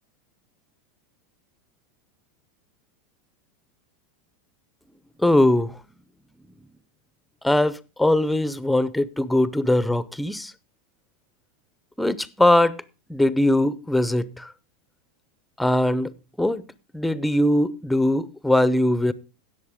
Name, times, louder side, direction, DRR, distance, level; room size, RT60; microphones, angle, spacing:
voice 1, 5.2-5.7 7.4-10.5 12.0-12.8 13.1-14.5 15.6-16.1 16.4-16.6 16.9-19.1, left 1 dB, 5° left, 0.6 m, -21 dB
17.5 x 6.7 x 3.6 m
supercardioid pair, 130°, 0 cm